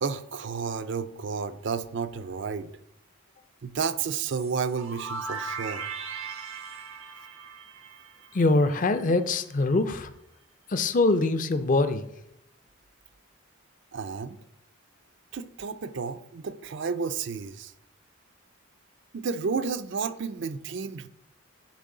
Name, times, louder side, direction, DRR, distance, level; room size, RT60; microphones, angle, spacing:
voice 1, 0.0-2.7 3.6-5.9 13.9-14.4 15.3-17.7 19.1-21.1, right 5 dB, 55° right, 0.4 m, -31 dB
sound 1, 4.2-9.0, right 5 dB, 90° right, 1.2 m, -38 dB
voice 2, 8.3-10.1 10.7-12.0, left 2 dB, 40° left, 0.5 m, -23 dB
10.5 x 4.7 x 3.8 m
head